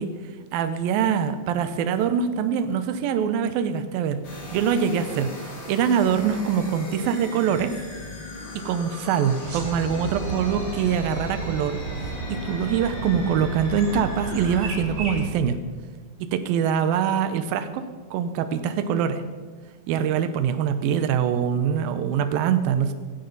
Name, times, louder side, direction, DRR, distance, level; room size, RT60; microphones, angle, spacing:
voice 1, 0.0-4.2 4.5-7.8 8.5-15.6 16.2-19.2 19.9-22.9, right 7 dB, 85° right, 9 dB, 2.6 m, -24 dB
sound 1, 4.2-14.8, left 2 dB, 70° left, 5.3 m, -38 dB
sound 2, 9.4-15.3, right 3 dB, 60° right, 4.1 m, -33 dB
17.5 x 16.5 x 4.0 m, 1.5 s
omnidirectional pair, 4.1 m